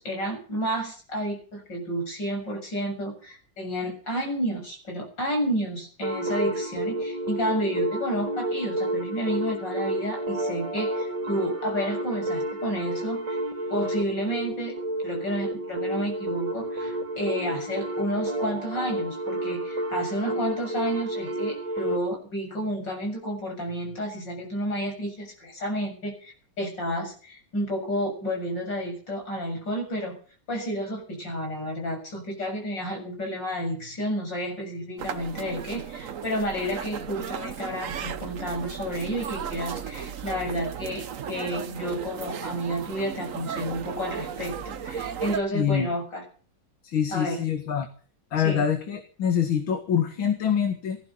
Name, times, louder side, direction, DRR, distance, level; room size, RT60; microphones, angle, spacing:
voice 1, 0.0-13.4 13.7-14.7 15.0-30.2 30.5-46.2 47.1-47.4 48.4-48.6, equal, 60° left, 2 dB, 7.7 m, -31 dB
sound 1, 6.0-22.0, right 1 dB, 75° right, 3.0 m, -30 dB
sound 2, 35.0-45.4, right 7 dB, 50° right, 1.1 m, -35 dB
voice 2, 45.5-45.9 46.8-47.9 48.3-51.0, left 8 dB, 80° left, 6 dB, 2.6 m, -25 dB
18.0 x 14.5 x 5.5 m, 0.42 s
omnidirectional pair, 2.2 m